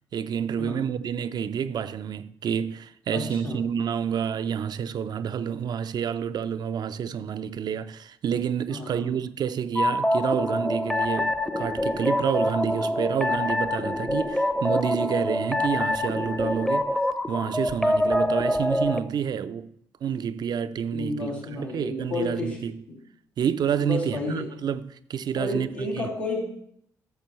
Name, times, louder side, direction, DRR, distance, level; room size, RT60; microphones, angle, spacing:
voice 1, 0.1-16.9 17.3-19.7 20.0-22.8 23.4-26.1, right 8 dB, 50° right, 0.4 m, -29 dB
voice 2, 3.1-3.6 8.7-9.1 20.9-22.6 22.9-23.0 23.8-24.5 25.3-26.4, left 2 dB, 90° left, 3.0 m, -31 dB
sound 1, 9.7-19.0, left 1 dB, 5° left, 0.7 m, -25 dB
12.0 x 6.7 x 3.1 m
hypercardioid pair, 50°, 9 cm